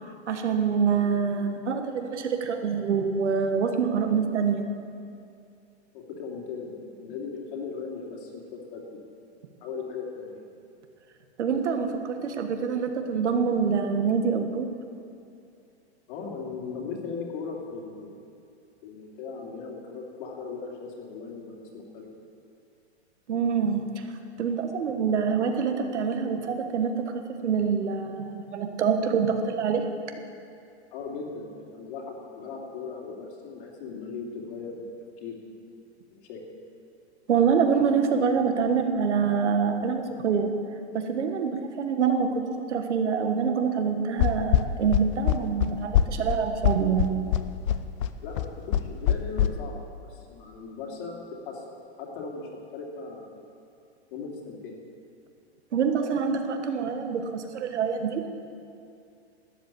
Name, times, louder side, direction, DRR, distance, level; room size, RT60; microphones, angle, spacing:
voice 1, 0.3-4.6 11.4-14.7 23.3-23.8 24.4-29.8 37.3-40.5 40.9-42.4 42.7-47.1 55.7-58.2, right 6 dB, 85° right, 6 dB, 1.5 m, -26 dB
voice 2, 5.9-9.0 9.6-10.5 16.1-18.3 18.8-22.1 30.9-34.9 35.2-35.6 36.1-36.4 48.2-51.6 52.0-53.4 54.1-54.8, left 4 dB, 50° left, -1 dB, 2.8 m, -38 dB
sound 1, 44.2-49.5, left 11 dB, 30° left, 0.3 m, -23 dB
12.5 x 8.1 x 8.4 m, 2.5 s
hypercardioid pair, 145°, 34 cm